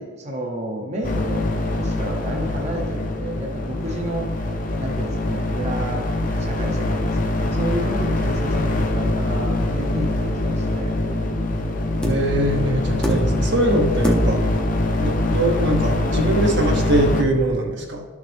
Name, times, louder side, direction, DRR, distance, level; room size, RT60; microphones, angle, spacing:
voice 1, 0.0-1.5 1.7-4.3 4.8-11.0, right 1 dB, 35° right, 0 dB, 0.9 m, -31 dB
sound 1, 1.0-17.2, left 1 dB, 40° left, 0.6 m, -23 dB
sound 2, 11.1-11.4 12.0-12.4 13.0-13.6 14.0-14.6 15.9-16.0, right 1 dB, 5° left, 0.8 m, -23 dB
voice 2, 12.0-14.4 15.0-18.0, right 1 dB, 60° right, 2 dB, 1.1 m, -22 dB
12.0 x 6.4 x 3.4 m, 1.4 s
head